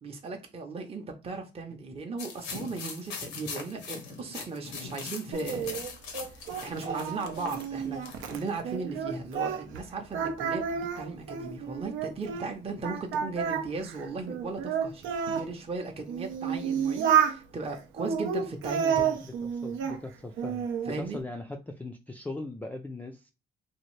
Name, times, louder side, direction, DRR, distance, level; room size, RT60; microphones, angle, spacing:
voice 1, 0.0-5.8 6.3-8.0 8.3-19.2 20.9-21.2, right 3 dB, 30° right, 0.7 m, -37 dB
sound 1, 2.2-8.4, left 5 dB, 90° left, 0.9 m, -41 dB
Singing, 5.3-9.8 10.1-12.5 12.8-15.5 16.1-17.4 18.0-20.0 20.4-21.0, right 7 dB, 85° right, 0.5 m, -30 dB
voice 2, 19.5-23.3, left 2 dB, 10° left, 0.3 m, -39 dB
2.7 x 2.5 x 3.1 m
cardioid pair, 90°, 20 cm